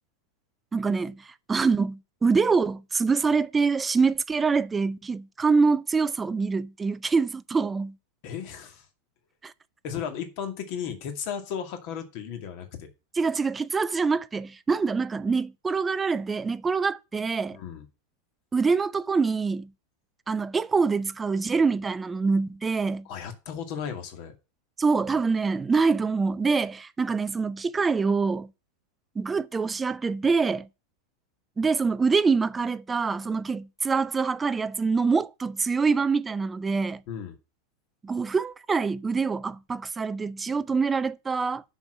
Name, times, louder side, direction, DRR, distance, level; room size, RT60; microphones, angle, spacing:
voice 1, 0.7-7.9 9.4-9.5 13.2-17.6 18.5-19.7 20.3-23.1 24.8-28.5 29.2-30.7 31.6-37.0 38.0-41.6, right 4 dB, 15° right, 0.5 m, -25 dB
voice 2, 8.2-8.9 9.8-12.9 17.5-17.9 23.1-24.3 37.1-37.4, left 8 dB, 45° left, 2.2 m, -35 dB
7.0 x 6.4 x 7.6 m
figure-of-eight pair, 90°, 0 cm